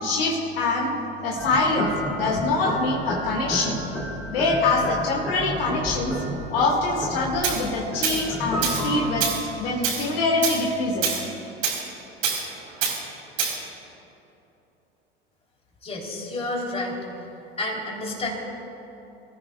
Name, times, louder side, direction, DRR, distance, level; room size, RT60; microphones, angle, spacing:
voice 1, 0.0-0.9 1.2-3.8 4.3-6.1 6.5-9.3 9.6-11.1, left 3 dB, 70° left, -1 dB, 2.0 m, -24 dB
sound 1, 1.4-9.5, equal, 5° left, 3.0 m, -32 dB
Tools, 7.4-7.6 8.0-8.2 8.6-8.9 9.2-9.4 9.8-10.1 10.4-10.6 11.0-11.2 11.6-11.8 12.2-12.4 12.8-13.0 13.4-13.6, right 6 dB, 65° right, 3.0 m, -25 dB
voice 2, 15.8-17.0 17.6-18.3, left 2 dB, 20° left, -1 dB, 3.3 m, -30 dB
24.5 x 14.0 x 2.3 m, 3.0 s
hypercardioid pair, 80°, 30 cm